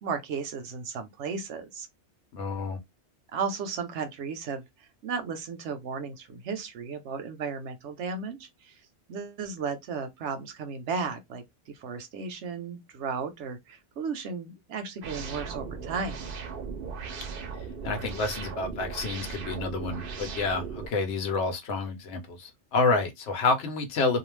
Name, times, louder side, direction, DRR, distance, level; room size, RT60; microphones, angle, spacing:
voice 1, 0.0-1.9 3.3-4.6 5.0-8.7 9.1-16.2, right 5 dB, 90° right, 1.0 m, -34 dB
voice 2, 2.3-2.8 17.8-24.2, left 3 dB, 85° left, 1.0 m, -28 dB
sound 1, 15.0-20.9, right 5 dB, 60° right, 0.7 m, -37 dB
2.4 x 2.3 x 3.2 m
omnidirectional pair, 1.1 m